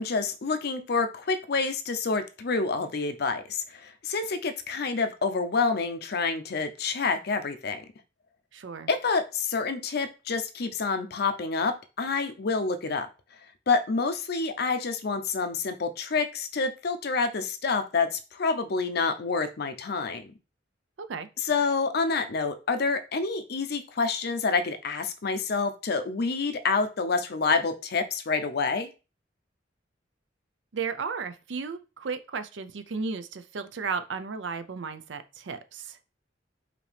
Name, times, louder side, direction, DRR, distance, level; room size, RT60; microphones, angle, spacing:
voice 1, 0.0-7.8 8.9-13.1 13.7-20.3 21.4-28.9, left 4 dB, 60° left, 8 dB, 0.6 m, -28 dB
voice 2, 8.5-8.9 21.0-21.3 30.7-36.0, right 5 dB, 80° right, 11 dB, 0.5 m, -34 dB
5.0 x 2.8 x 3.3 m, 0.31 s
head